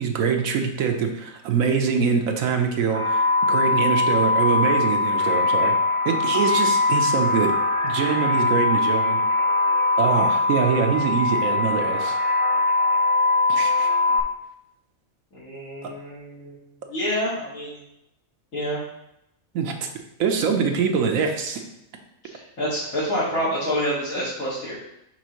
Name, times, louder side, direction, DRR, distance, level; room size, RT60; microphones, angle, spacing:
voice 1, 0.0-3.2 3.5-5.7 6.0-7.6 7.8-9.2 10.0-12.2 13.5-13.9 15.8-15.9 19.5-19.9 20.2-21.6, right 6 dB, 85° right, 4 dB, 1.2 m, -24 dB
sound 1, 2.9-14.2, left 3 dB, 35° right, 0.5 m, -21 dB
voice 2, 15.3-16.5 16.9-17.8 18.5-18.8 22.3-24.8, equal, 80° left, -11 dB, 2.2 m, -27 dB
6.0 x 5.3 x 3.0 m, 0.82 s
omnidirectional pair, 1.4 m